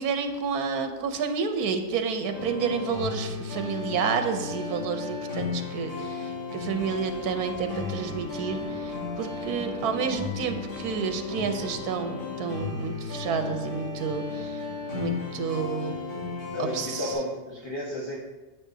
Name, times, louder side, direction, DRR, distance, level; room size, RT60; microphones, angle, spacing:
voice 1, 0.0-14.6 14.9-16.0 16.6-17.1, right 6 dB, 85° right, 7 dB, 1.2 m, -30 dB
sound 1, 2.3-17.1, left 4 dB, 85° left, 3.5 m, -35 dB
sound 2, 6.7-12.0, right 4 dB, 45° right, 1.2 m, -45 dB
voice 2, 16.5-18.2, left 1 dB, 20° left, -4 dB, 0.9 m, -32 dB
9.9 x 7.3 x 2.7 m, 1.1 s
omnidirectional pair, 1.6 m